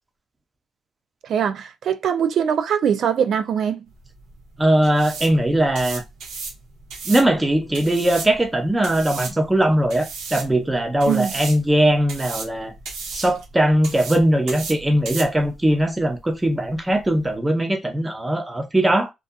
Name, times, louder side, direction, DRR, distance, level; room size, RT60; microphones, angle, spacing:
voice 1, 1.2-3.8 11.1-11.3, right 8 dB, 65° right, 0.3 m, -22 dB
sound 1, 3.9-17.3, right 4 dB, 85° right, 0.8 m, -36 dB
voice 2, 4.6-6.0 7.1-12.7 13.1-19.1, right 1 dB, 15° right, 0.7 m, -20 dB
2.7 x 2.4 x 2.3 m
cardioid pair, 90°, 0 cm